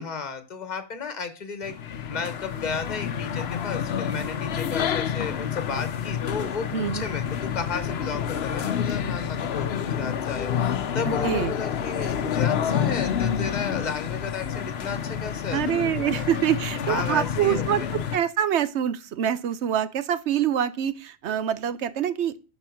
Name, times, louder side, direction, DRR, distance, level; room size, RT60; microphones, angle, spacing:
voice 1, 0.0-1.7 2.1-16.3 16.8-18.0, left 5 dB, 40° left, 1.3 m, -33 dB
sound 1, 1.6-18.2, left 8 dB, 70° left, 1.0 m, -28 dB
voice 2, 6.7-7.1 11.1-11.5 15.5-22.4, right 10 dB, 80° right, 1.0 m, -25 dB
12.0 x 4.5 x 5.8 m
omnidirectional pair, 1.1 m